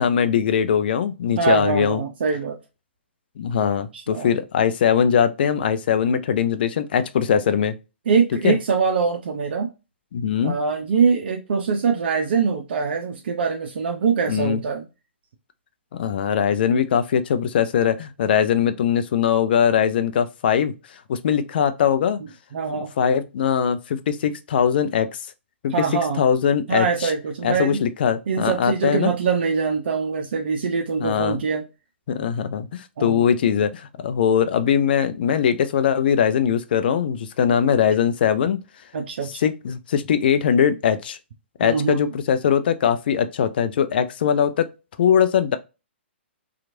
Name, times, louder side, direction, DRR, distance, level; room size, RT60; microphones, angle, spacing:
voice 1, 0.0-2.0 3.4-7.7 8.4-8.6 10.1-10.5 14.3-14.6 15.9-20.7 21.1-22.2 22.8-25.1 25.6-27.1 27.4-29.1 31.0-31.4 32.1-38.6 39.4-41.2 41.6-44.7 45.0-45.6, left 8 dB, 55° left, 0.5 m, -21 dB
voice 2, 1.4-2.6 3.9-4.3 8.1-9.7 10.4-14.8 22.5-22.9 25.7-26.2 26.7-27.8 28.3-31.6 33.0-33.3 38.9-39.4 41.6-42.1, right 5 dB, 60° right, 0.6 m, -23 dB
2.9 x 2.4 x 2.6 m
figure-of-eight pair, 120°, 6 cm